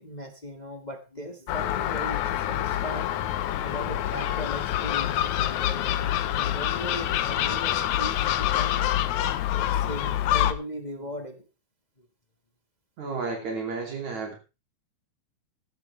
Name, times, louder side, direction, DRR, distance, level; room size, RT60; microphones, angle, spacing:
voice 1, 0.0-3.1 3.6-8.9 9.5-11.4, equal, 30° left, 5 dB, 0.8 m, -38 dB
Gull seagull, 1.5-10.5, left 12 dB, 75° left, 2.1 m, -26 dB
voice 2, 13.0-14.3, right 4 dB, 70° right, 2 dB, 4.1 m, -32 dB
15.5 x 12.5 x 3.3 m, 0.30 s
omnidirectional pair, 3.5 m